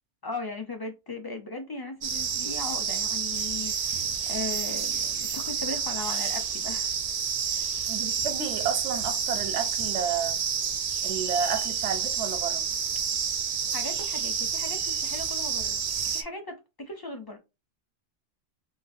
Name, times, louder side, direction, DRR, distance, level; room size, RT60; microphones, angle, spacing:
voice 1, 0.2-4.0 4.2-7.0 7.4-7.8 13.7-15.8 16.1-17.4, left 2 dB, 30° left, 0.4 m, -38 dB
sound 1, 2.0-16.2, right 7 dB, 60° right, 0.4 m, -29 dB
voice 2, 7.9-10.4 11.0-12.6, right 7 dB, 85° right, 0.9 m, -31 dB
3.9 x 2.6 x 2.6 m
omnidirectional pair, 1.2 m